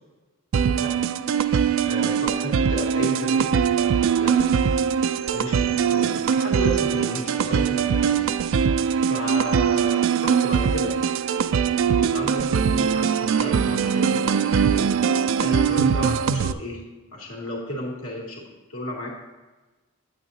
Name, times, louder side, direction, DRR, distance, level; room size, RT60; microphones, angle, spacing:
sound 1, 0.5-16.5, right 7 dB, 65° right, 0.3 m, -22 dB
voice 1, 0.6-0.9 1.3-3.5 4.1-4.4 5.2-8.3 9.0-10.9 11.9-14.9 15.4-16.8 17.1-18.4 18.7-19.1, equal, 80° left, -2 dB, 2.3 m, -33 dB
9.1 x 8.9 x 2.8 m, 1.2 s
head